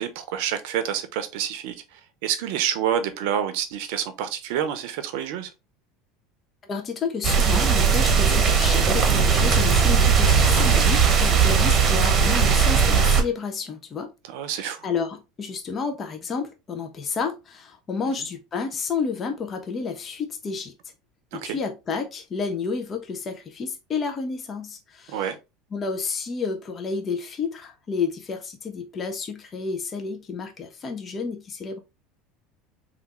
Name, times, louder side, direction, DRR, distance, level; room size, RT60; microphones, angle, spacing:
voice 1, 0.0-5.5 14.3-14.9 21.3-21.6 25.1-25.4, right 9 dB, 70° right, 0.6 m, -28 dB
voice 2, 6.7-14.1 14.6-20.7 21.3-25.3 25.7-31.8, left 5 dB, 35° left, 0.6 m, -30 dB
sound 1, 7.2-13.2, right 6 dB, 40° right, 0.9 m, -18 dB
3.4 x 2.4 x 3.0 m
hypercardioid pair, 85°, 0 cm